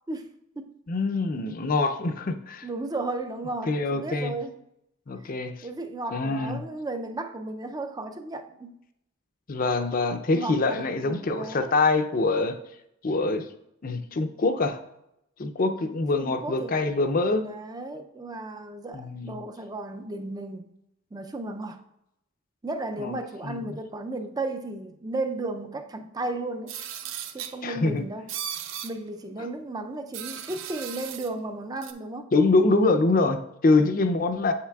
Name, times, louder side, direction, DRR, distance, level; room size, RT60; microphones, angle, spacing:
voice 1, 0.9-2.7 3.7-4.4 5.1-5.5 6.1-6.6 9.5-12.6 13.0-13.5 13.8-14.8 15.4-17.5 18.9-19.4 23.0-23.2 23.4-23.7 27.6-28.0 32.3-34.5, left 3 dB, 45° left, 7 dB, 0.5 m, -24 dB
voice 2, 2.6-4.6 5.2-8.8 10.3-11.8 16.2-16.9 17.4-20.6 21.1-21.8 22.6-26.7 27.3-28.3 28.8-32.3, right 2 dB, 20° right, 7 dB, 0.4 m, -34 dB
sound 1, 26.7-27.6 28.3-28.9 30.1-31.3 31.8-31.9, right 9 dB, 75° right, 0.5 m, -36 dB
8.0 x 5.8 x 2.3 m, 0.81 s
head